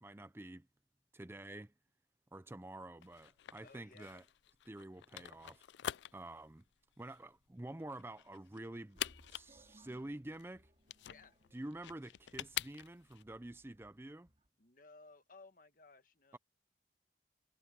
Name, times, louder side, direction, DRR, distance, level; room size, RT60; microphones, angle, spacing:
voice 1, 0.0-0.7 1.1-1.7 2.3-4.2 4.7-5.6 6.1-6.6 7.0-9.0 9.3-10.7 11.5-14.3 16.3-16.4, right 1 dB, 15° right, 0.5 m, -48 dB
sound 1, 3.0-13.2, left 11 dB, 85° left, 0.4 m, -46 dB
voice 2, 3.6-4.2 11.0-11.4 14.6-16.4, left 3 dB, 50° left, 1.4 m, -59 dB
sound 2, 8.9-14.5, right 1 dB, 35° right, 2.6 m, -67 dB
head